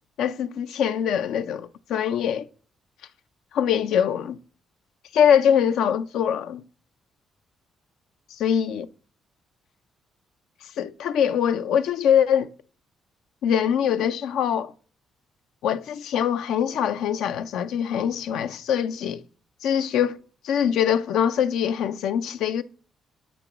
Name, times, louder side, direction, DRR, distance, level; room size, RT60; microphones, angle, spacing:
voice 1, 0.2-2.5 3.5-4.4 5.1-6.6 8.3-8.9 10.8-12.5 13.4-14.7 15.6-19.2 19.6-20.2 20.4-22.6, left 8 dB, 85° left, 0.4 m, -23 dB
7.8 x 3.0 x 5.9 m
cardioid pair, 90°, 0 cm